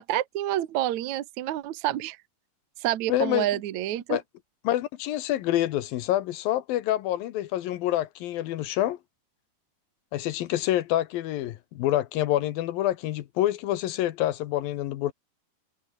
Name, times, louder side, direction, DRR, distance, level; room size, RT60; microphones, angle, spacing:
voice 1, 0.0-2.2 2.8-4.2, right 13 dB, 60° right, 2.0 m, -28 dB
voice 2, 3.1-3.5 4.1-4.2 4.6-9.0 10.1-15.1, left 13 dB, 70° left, 2.4 m, -27 dB
omnidirectional pair, 5.1 m